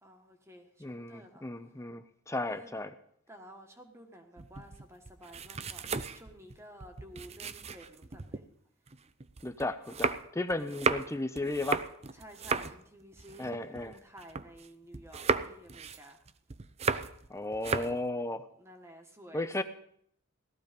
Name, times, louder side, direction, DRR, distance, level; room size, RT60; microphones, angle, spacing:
voice 1, 0.0-1.8 2.5-2.7 3.3-8.4 10.6-10.9 12.1-16.3 18.6-19.6, equal, 10° right, 4 dB, 1.4 m, -53 dB
voice 2, 0.8-2.9 9.4-11.9 13.4-14.0 17.3-18.5 19.3-19.6, left 2 dB, 15° left, 10 dB, 0.6 m, -35 dB
sound 1, 4.4-8.4 8.9-14.7 14.9-17.3 17.5-18.0, right 4 dB, 30° right, 0.6 m, -35 dB
17.5 x 14.0 x 5.2 m, 0.66 s
head